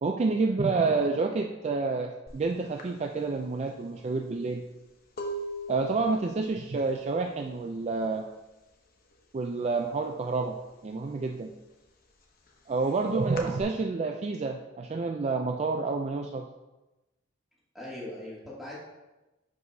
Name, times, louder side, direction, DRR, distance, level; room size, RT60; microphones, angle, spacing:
voice 1, 0.0-4.6 5.7-8.3 9.3-10.6 10.8-11.5 12.7-16.5, right 3 dB, 35° right, 3 dB, 0.4 m, -29 dB
sound 1, 2.3-2.4 2.8-8.5 8.7-9.2 9.5-10.7 11.0-13.6, right 1 dB, 50° left, 0.9 m, -41 dB
voice 2, 17.7-18.7, left 1 dB, ahead, -8 dB, 2.5 m, -41 dB
10.5 x 4.8 x 2.7 m, 1.0 s
head